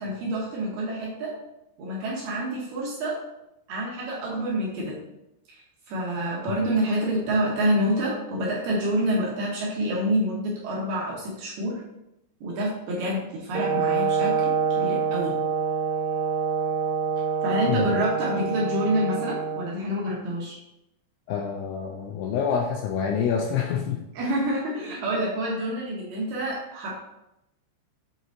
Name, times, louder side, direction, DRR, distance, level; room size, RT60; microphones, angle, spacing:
voice 1, 0.0-1.3 1.8-3.2 3.7-5.0 5.5-5.6 5.9-11.8 12.4-15.4 17.4-20.6 24.1-26.9, equal, 70° right, -4 dB, 2.7 m, -27 dB
Brass instrument, 13.5-19.7, right 6 dB, 90° right, 3.3 m, -26 dB
voice 2, 21.3-24.0, left 7 dB, 85° left, 2 dB, 2.7 m, -27 dB
8.0 x 4.0 x 3.9 m, 0.86 s
omnidirectional pair, 5.9 m